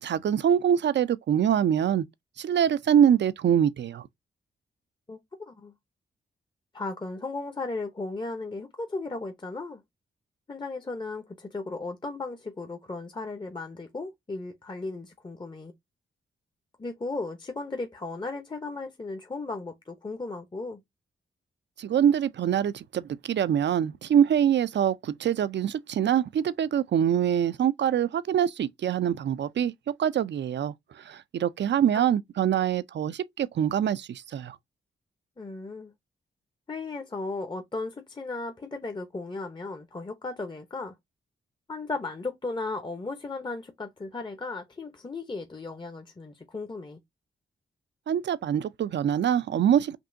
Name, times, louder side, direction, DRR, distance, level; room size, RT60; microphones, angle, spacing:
voice 1, 0.0-2.0 2.4-4.0 21.8-29.7 30.0-30.7 31.1-34.6 48.1-50.0, right 9 dB, 60° right, 0.5 m, -24 dB
voice 2, 5.1-5.7 6.7-9.8 10.5-15.7 16.8-20.8 31.9-32.1 35.4-35.9 36.7-40.9 41.7-47.0, left 3 dB, 20° left, 0.7 m, -36 dB
5.2 x 2.7 x 2.6 m
cardioid pair, 55°, 21 cm